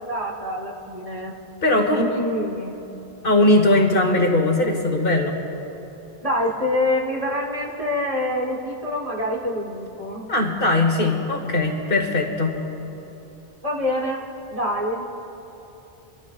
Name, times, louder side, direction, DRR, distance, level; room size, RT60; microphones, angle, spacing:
voice 1, 0.0-1.3 1.9-2.8 6.2-10.3 13.6-15.0, left 1 dB, 35° right, -2 dB, 1.3 m, -26 dB
voice 2, 1.6-2.0 3.2-5.4 10.3-12.6, left 2 dB, 60° left, 2 dB, 1.5 m, -19 dB
29.5 x 12.5 x 2.4 m, 2.9 s
omnidirectional pair, 1.1 m